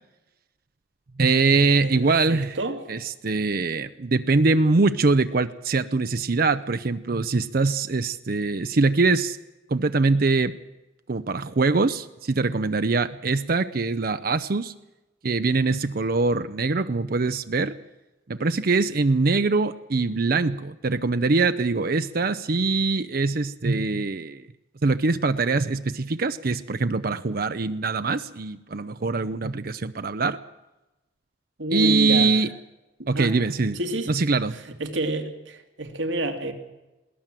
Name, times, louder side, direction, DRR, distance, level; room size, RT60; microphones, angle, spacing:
voice 1, 1.2-2.6 2.9-9.4 9.7-10.6 11.1-14.7 15.2-17.8 18.3-24.5 24.8-30.4 31.7-32.5 33.1-33.8 34.1-34.6, right 3 dB, 50° right, 10 dB, 0.6 m, -23 dB
voice 2, 2.3-2.8 31.6-32.3 33.0-33.3 33.7-34.1 34.8-36.5, right 1 dB, 85° right, 6 dB, 2.5 m, -28 dB
21.5 x 17.5 x 7.5 m, 1.0 s
head